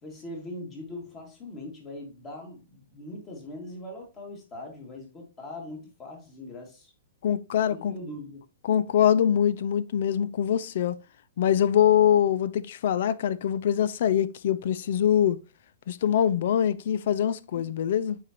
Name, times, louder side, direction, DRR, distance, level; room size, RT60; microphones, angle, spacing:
voice 1, 0.0-6.9 7.7-8.4, left 1 dB, 15° left, 2.2 m, -41 dB
voice 2, 7.2-7.9 8.6-11.0 11.4-15.4 15.9-18.2, left 9 dB, 50° left, 0.4 m, -23 dB
8.8 x 4.7 x 2.9 m
hypercardioid pair, 165°, 0 cm